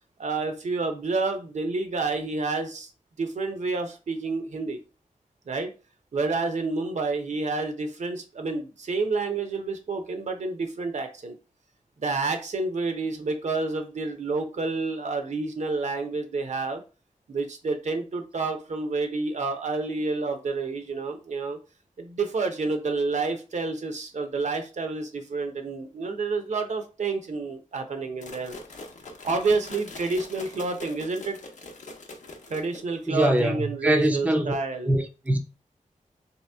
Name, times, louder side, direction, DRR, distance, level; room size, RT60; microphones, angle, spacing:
voice 1, 0.2-2.9 3.2-4.8 5.5-5.7 6.1-11.4 12.0-16.8 17.3-21.6 22.0-28.5 29.2-31.4 32.5-34.9, right 3 dB, 60° right, 0.7 m, -29 dB
sound 1, 28.2-33.1, left 2 dB, 65° left, 0.7 m, -43 dB
voice 2, 33.1-34.5 34.8-35.4, right 1 dB, 10° right, 0.5 m, -23 dB
3.1 x 2.9 x 3.3 m
wide cardioid pair, 135°, 13 cm